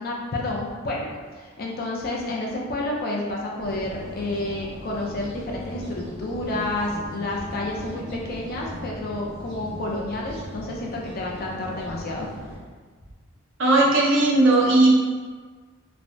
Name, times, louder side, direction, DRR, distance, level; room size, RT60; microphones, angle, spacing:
voice 1, 0.0-12.3, left 2 dB, 45° left, -2 dB, 0.4 m, -30 dB
sound 1, 3.6-12.6, equal, 20° right, 1.0 m, -38 dB
voice 2, 13.6-14.9, right 2 dB, 60° right, -3 dB, 0.6 m, -17 dB
3.2 x 2.0 x 2.6 m, 1.5 s
head